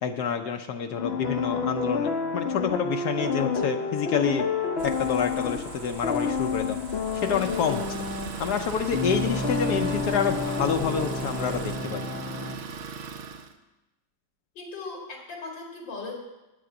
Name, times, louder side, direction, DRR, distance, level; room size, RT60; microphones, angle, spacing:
voice 1, 0.0-4.5 4.8-6.8 7.2-7.8 8.4-12.1, left 7 dB, 70° left, 6 dB, 1.2 m, -28 dB
sound 1, 1.0-12.6, left 4 dB, 50° left, 0.8 m, -29 dB
sound 2, 4.8-11.8, right 2 dB, 85° right, 2.1 m, -42 dB
Idling, 7.0-13.6, right 5 dB, 60° right, 0.8 m, -39 dB
voice 2, 14.5-16.2, left 3 dB, 90° left, -1 dB, 2.8 m, -38 dB
8.7 x 8.6 x 7.9 m, 1.0 s
omnidirectional pair, 2.0 m